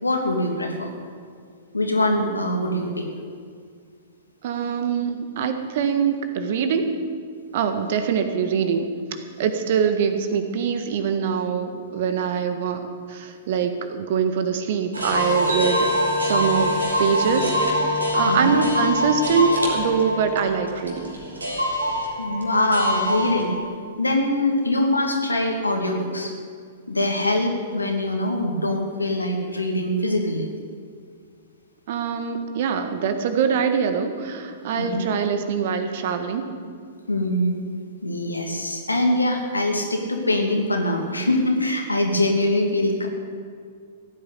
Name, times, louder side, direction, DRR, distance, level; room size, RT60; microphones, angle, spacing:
voice 1, 0.0-0.9 1.7-3.1 18.2-18.6 22.2-23.6 24.0-26.3 26.9-30.5 34.8-35.1 37.1-37.6 38.0-43.1, left 1 dB, 85° left, 2 dB, 2.5 m, -23 dB
voice 2, 4.4-6.9 7.5-15.9 16.2-16.7 17.0-17.5 18.1-21.2 31.9-36.4, right 6 dB, 50° right, 7 dB, 1.7 m, -24 dB
sound 1, 14.9-23.6, equal, 85° right, 3.6 m, -24 dB
15.5 x 9.7 x 8.5 m, 2.1 s
figure-of-eight pair, 105°, 0 cm